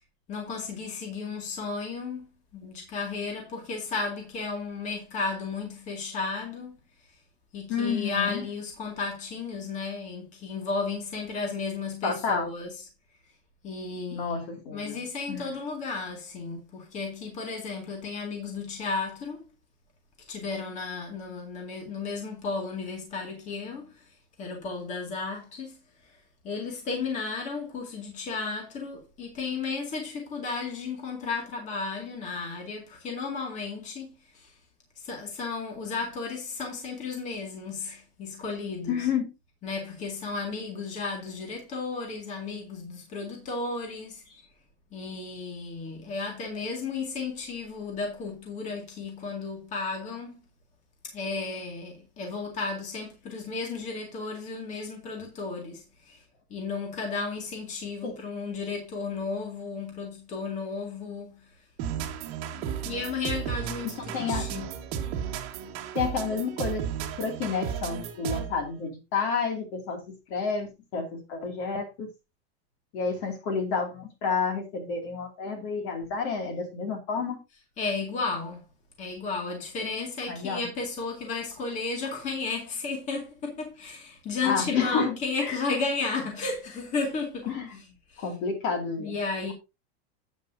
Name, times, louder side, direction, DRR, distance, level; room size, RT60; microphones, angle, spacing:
voice 1, 0.3-2.3 2.5-6.8 7.1-7.2 7.5-12.8 13.6-19.4 20.3-24.1 24.4-25.8 26.0-26.1 26.4-34.6 35.0-39.1 39.6-44.2 44.9-50.4 51.0-56.2 56.5-61.5 62.6-64.7 77.8-78.6 79.0-88.3 89.0-89.5, left 4 dB, 25° left, 2.2 m, -34 dB
voice 2, 7.7-8.4 12.0-12.5 14.1-15.0 15.3-15.5 38.9-39.3 58.0-58.2 64.1-64.5 65.9-66.8 67.2-70.0 70.3-72.1 72.9-77.4 80.3-80.7 84.4-85.6 87.5-87.7 88.2-89.2, left 5 dB, 45° left, 2.6 m, -30 dB
sound 1, 61.8-68.7, right 8 dB, 40° right, 1.7 m, -34 dB
9.7 x 9.1 x 2.7 m
supercardioid pair, 175°, 32 cm